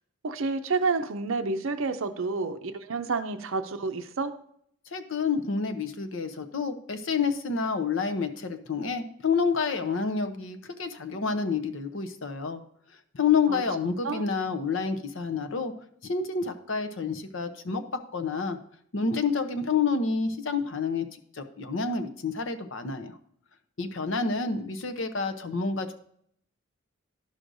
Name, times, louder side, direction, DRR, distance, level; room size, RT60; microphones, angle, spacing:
voice 1, 0.2-4.3 13.5-13.6 14.0-14.2, right 4 dB, 70° right, 9 dB, 0.6 m, -29 dB
voice 2, 4.9-12.6 13.1-15.7 16.0-17.8 18.1-18.6 18.9-23.2 23.8-25.9, left 5 dB, 65° left, 8 dB, 0.7 m, -28 dB
11.5 x 6.2 x 2.6 m, 0.67 s
head